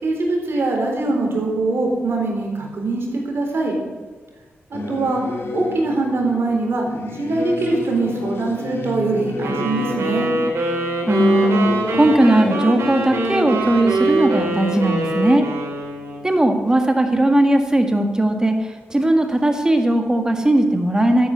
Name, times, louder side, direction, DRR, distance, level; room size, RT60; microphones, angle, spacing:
voice 1, 0.0-3.7 4.7-5.2 5.5-6.8 7.1-10.3, right 3 dB, 65° right, 0 dB, 4.0 m, -22 dB
Singing / Musical instrument, 4.7-16.6, left 3 dB, 65° left, 1.9 m, -31 dB
sound 1, 9.4-16.4, right 2 dB, 85° right, 3.3 m, -23 dB
voice 2, 11.1-15.5 16.2-21.3, right 1 dB, 15° right, 5 dB, 1.7 m, -18 dB
12.5 x 10.5 x 6.8 m, 1.4 s
wide cardioid pair, 110°, 5 cm